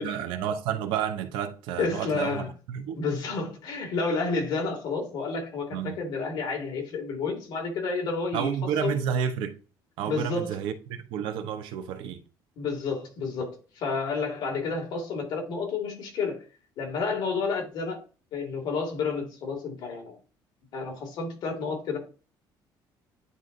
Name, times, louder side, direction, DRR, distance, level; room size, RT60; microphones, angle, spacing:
voice 1, 0.0-3.0 5.7-6.0 8.3-9.6 10.0-12.2, right 8 dB, 90° right, 0.9 m, -30 dB
voice 2, 1.8-2.5 3.0-8.5 8.8-9.0 10.1-10.6 12.6-16.4 16.8-18.0 18.3-20.2 20.7-22.0, left 4 dB, 60° left, 2.3 m, -30 dB
9.7 x 3.8 x 2.6 m
cardioid pair, 160°, 8 cm